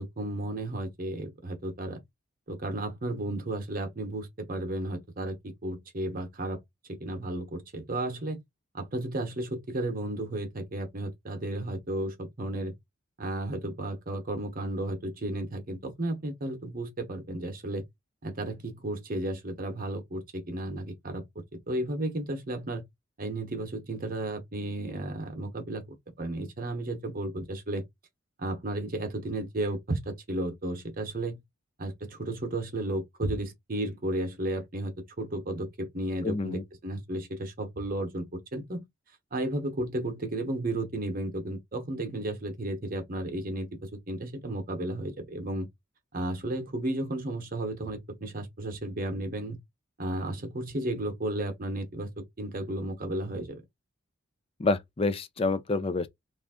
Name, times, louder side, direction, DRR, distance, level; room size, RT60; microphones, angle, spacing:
voice 1, 0.0-2.0 2.5-6.6 6.9-8.4 8.7-12.7 13.2-17.8 18.2-22.8 23.2-25.8 26.2-27.8 28.4-31.4 31.8-38.8 39.3-45.7 46.1-49.6 50.0-53.6, right 1 dB, 45° right, 0.9 m, -33 dB
voice 2, 36.2-36.6 54.6-56.1, left 3 dB, 30° left, 0.4 m, -28 dB
3.3 x 2.5 x 3.6 m
head